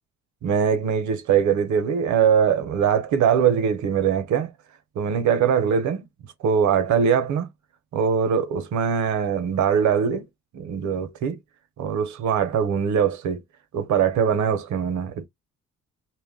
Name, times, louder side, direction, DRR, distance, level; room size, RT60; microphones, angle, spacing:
voice 1, 0.4-4.5 5.0-6.1 6.4-7.5 7.9-10.3 10.5-11.4 11.8-13.4 13.7-15.3, right 7 dB, 70° right, 0.7 m, -22 dB
2.2 x 2.1 x 3.4 m
cardioid pair, 90°, 30 cm